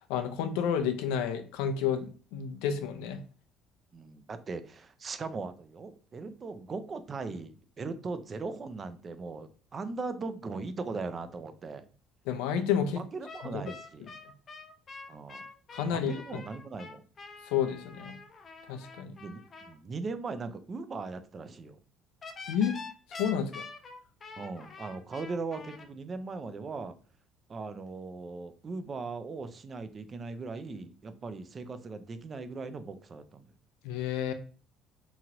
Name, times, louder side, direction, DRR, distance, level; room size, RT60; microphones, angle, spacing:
voice 1, 0.1-3.2 12.3-13.0 15.7-16.2 17.5-18.1 18.7-19.2 22.5-22.8 23.2-23.6 33.8-34.3, left 8 dB, 90° left, 8 dB, 0.4 m, -30 dB
voice 2, 3.9-11.9 13.0-14.1 15.1-15.4 15.9-17.1 19.2-21.8 24.4-27.0 27.5-33.5, right 3 dB, 35° right, 10 dB, 0.4 m, -39 dB
sound 1, 13.3-19.7 22.2-25.9, left 4 dB, 35° left, 0.4 m, -46 dB
2.9 x 2.5 x 2.9 m, 0.39 s
cardioid pair, 105°, 0 cm